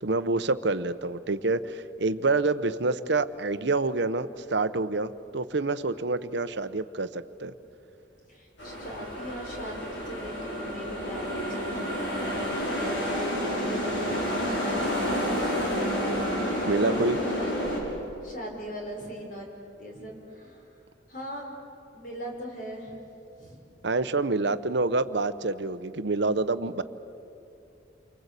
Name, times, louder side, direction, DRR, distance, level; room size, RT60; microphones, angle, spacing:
voice 1, 0.0-7.5 16.7-17.2 23.8-26.8, right 3 dB, 60° right, 12 dB, 0.9 m, -27 dB
voice 2, 8.3-12.4 12.7-16.0 17.4-17.7 18.2-19.5 19.8-20.7 21.1-21.5 21.9-23.0 23.4-23.6, equal, 45° left, 1 dB, 5.4 m, -40 dB
sound 1, 8.6-17.8, equal, 70° left, 6.0 m, -29 dB
29.5 x 24.0 x 8.3 m, 2.8 s
head